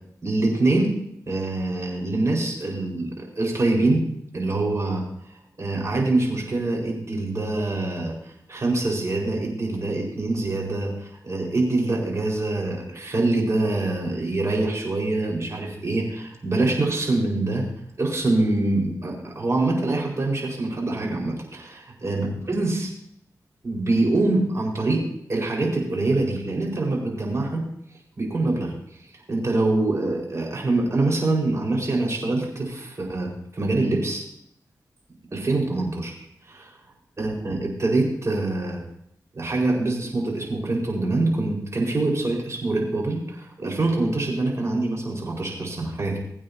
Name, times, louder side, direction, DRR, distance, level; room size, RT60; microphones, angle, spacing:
voice 1, 0.2-0.9 1.3-4.0 4.3-5.0 5.6-17.6 18.0-22.9 23.6-25.0 25.3-27.6 28.2-28.7 29.3-34.2 35.3-36.1 36.5-36.7 37.2-38.8 39.3-46.2, right 2 dB, 45° right, -2 dB, 4.7 m, -24 dB
21.5 x 8.7 x 2.8 m, 0.74 s
cardioid pair, 70°, 7 cm